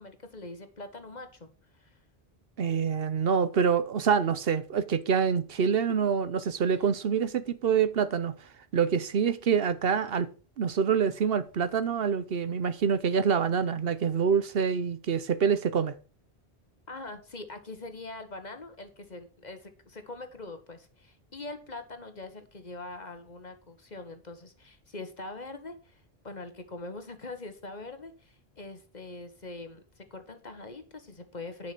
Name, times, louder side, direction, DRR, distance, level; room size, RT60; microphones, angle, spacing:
voice 1, 0.0-1.5 1.7-2.0 6.8-6.9 16.9-31.7, left 2 dB, 45° left, 1.5 m, -43 dB
voice 2, 2.6-8.3 8.7-10.3 10.6-15.9, right 7 dB, 65° right, 1.0 m, -26 dB
10.5 x 5.8 x 6.0 m
omnidirectional pair, 1.1 m